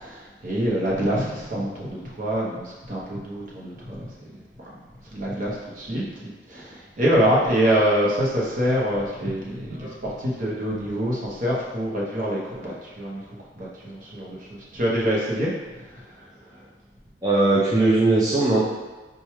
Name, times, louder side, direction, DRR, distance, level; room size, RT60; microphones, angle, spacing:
voice 1, 0.0-4.4 4.7-4.8 5.1-13.2 13.6-16.0 16.5-16.6, equal, 50° right, -5 dB, 0.8 m, -26 dB
voice 2, 17.2-18.6, right 2 dB, 20° right, -7 dB, 0.5 m, -19 dB
4.4 x 2.3 x 3.1 m, 1.2 s
head